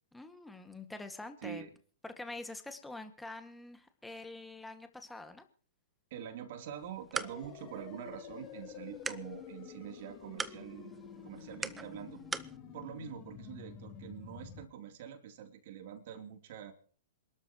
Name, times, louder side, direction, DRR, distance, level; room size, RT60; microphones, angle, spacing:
voice 1, 0.1-1.7 2.0-5.5, left 2 dB, 5° left, 7 dB, 2.1 m, -46 dB
voice 2, 6.1-10.9 11.2-12.2 12.7-16.7, right 9 dB, 55° right, 4 dB, 3.5 m, -45 dB
sound 1, 6.7-12.6, right 4 dB, 10° right, 0.9 m, -44 dB
sound 2, 7.2-14.6, left 7 dB, 35° left, 4.8 m, -49 dB
27.5 x 13.0 x 3.1 m, 0.44 s
hypercardioid pair, 120°, 0 cm